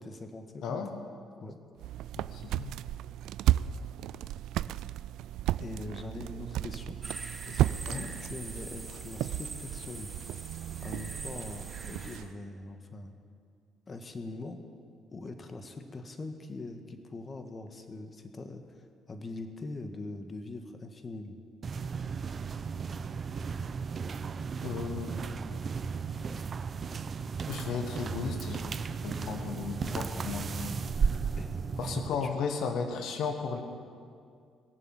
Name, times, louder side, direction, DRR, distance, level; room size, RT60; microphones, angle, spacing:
voice 1, 0.0-0.8 1.4-1.6 5.6-7.0 7.4-10.1 10.8-13.1 13.9-14.6 15.1-18.8 19.1-21.4 26.3-26.4 31.4-31.9 32.2-32.4, left 2 dB, 35° left, 6 dB, 1.7 m, -42 dB
sound 1, 1.8-12.3, right 13 dB, 70° right, 0.3 m, -34 dB
voice 2, 2.2-2.7 7.9-8.1 24.6-25.1 27.5-28.6 29.0-30.9 31.8-33.6, left 5 dB, 65° left, 5 dB, 1.4 m, -35 dB
sound 2, 7.0-12.2, right 3 dB, 25° right, 4.1 m, -44 dB
sound 3, 21.6-32.1, right 5 dB, 45° right, 0.7 m, -35 dB
21.5 x 7.3 x 8.9 m, 2.2 s
hypercardioid pair, 55°, 0 cm